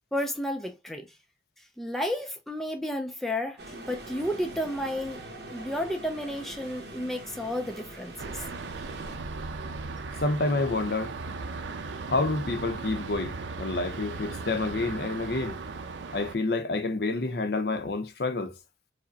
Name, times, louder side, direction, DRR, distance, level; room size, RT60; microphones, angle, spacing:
voice 1, 0.1-1.1 1.6-5.2 5.5-8.5, left 1 dB, ahead, 0.4 m, -32 dB
sound 1, 3.6-9.2, right 1 dB, 65° right, 1.0 m, -43 dB
sound 2, 8.2-16.3, right 4 dB, 85° right, 0.5 m, -37 dB
voice 2, 10.2-11.1 12.1-15.6 16.1-18.5, left 2 dB, 60° left, 0.6 m, -28 dB
4.8 x 2.1 x 2.6 m
head